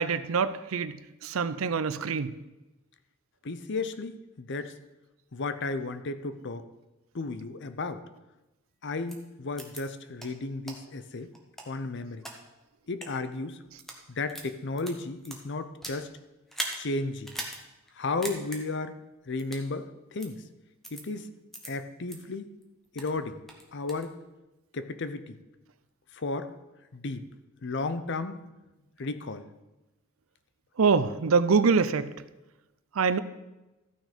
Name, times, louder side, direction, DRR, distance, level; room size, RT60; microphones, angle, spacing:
voice 1, 0.0-2.4 30.8-32.1 32.9-33.2, right 5 dB, 90° right, 14 dB, 0.6 m, -25 dB
voice 2, 3.4-4.7 5.3-6.6 7.1-8.0 8.8-11.3 11.7-12.3 12.9-13.6 14.1-16.1 16.8-17.3 18.0-19.0 19.3-20.4 20.9-21.3 21.7-22.5 22.9-23.4 23.7-24.1 24.7-25.4 26.1-26.5 26.9-27.2 27.6-28.4 29.0-29.5, left 3 dB, 60° left, 11 dB, 0.7 m, -34 dB
sound 1, 9.1-9.2 9.6-9.8 10.2-10.3 10.7-10.8 11.3-12.3 12.9-13.1 13.7-14.0 14.3-16.0 16.5-16.8 17.2-17.6 17.9-18.0 18.2-18.6 19.4-19.7 20.2-20.3 20.8-21.0 21.5-21.7 22.1-22.2 22.6-23.1 23.5-24.1, right 1 dB, ahead, 1.4 m, -39 dB
14.0 x 6.3 x 5.1 m, 1.0 s
head